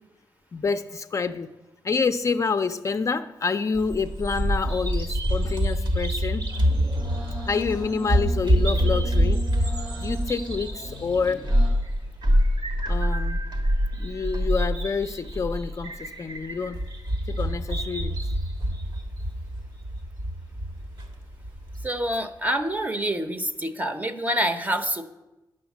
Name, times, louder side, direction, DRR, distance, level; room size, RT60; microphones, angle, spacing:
voice 1, 0.5-1.5 1.8-6.4 7.5-9.4 10.0-11.4 12.9-13.4 14.0-16.8 17.4-18.2, left 5 dB, 40° left, 8 dB, 0.4 m, -27 dB
Bird vocalization bird call bird song, 3.8-21.9, equal, 65° right, 1.4 m, -26 dB
sound 1, 6.5-11.7, right 2 dB, 85° right, 3.0 m, -39 dB
voice 2, 21.8-25.0, right 1 dB, 20° right, 8 dB, 0.7 m, -26 dB
9.6 x 6.3 x 7.1 m, 1.0 s
wide cardioid pair, 135°, 8 cm